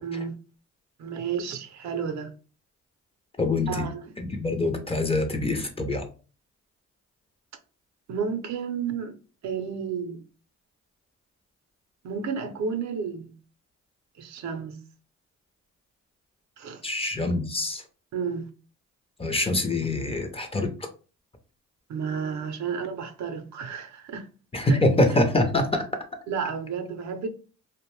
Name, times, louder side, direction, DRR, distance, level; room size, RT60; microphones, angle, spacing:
voice 1, 0.0-0.3 1.0-2.3 3.7-4.1 8.1-9.2 9.4-10.3 12.0-13.3 14.2-14.8 16.6-16.8 18.1-18.5 21.9-24.3 26.3-27.3, right 6 dB, 65° right, 0.6 m, -31 dB
voice 2, 3.4-3.8 4.2-6.0 16.8-17.8 19.2-20.7 24.5-25.8, left 2 dB, 20° left, 0.5 m, -24 dB
2.5 x 2.1 x 3.0 m
cardioid pair, 90°, 30 cm